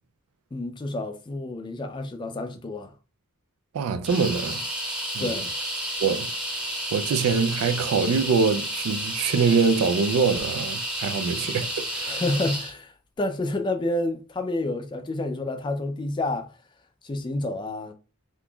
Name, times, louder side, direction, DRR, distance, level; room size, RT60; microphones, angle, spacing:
voice 1, 0.5-2.9 5.2-5.5 12.1-16.5 17.0-17.9, left 2 dB, 20° left, 0.3 m, -29 dB
voice 2, 3.7-4.6 5.1-5.3 6.0-6.3 6.9-12.2, right 5 dB, 75° right, 0.3 m, -24 dB
sound 1, 4.0-12.7, equal, 5° right, 0.7 m, -31 dB
3.7 x 2.9 x 2.2 m
head